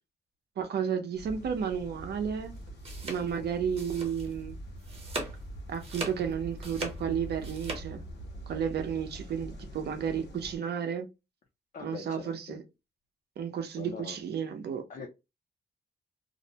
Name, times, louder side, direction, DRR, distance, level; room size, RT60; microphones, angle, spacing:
voice 1, 0.6-2.5 3.0-4.6 5.7-8.0 8.5-11.1 11.8-12.6 13.4-14.8, right 7 dB, 65° right, 0.6 m, -32 dB
sound 1, 1.1-10.6, right 1 dB, 70° left, 0.9 m, -44 dB
sound 2, 2.6-4.5 4.8-5.4 5.7-7.8, right 2 dB, 35° right, 0.9 m, -39 dB
voice 2, 11.7-12.6 13.8-14.2 14.9-15.1, left 5 dB, 45° left, 0.5 m, -42 dB
2.5 x 2.1 x 2.7 m
wide cardioid pair, 155°, 18 cm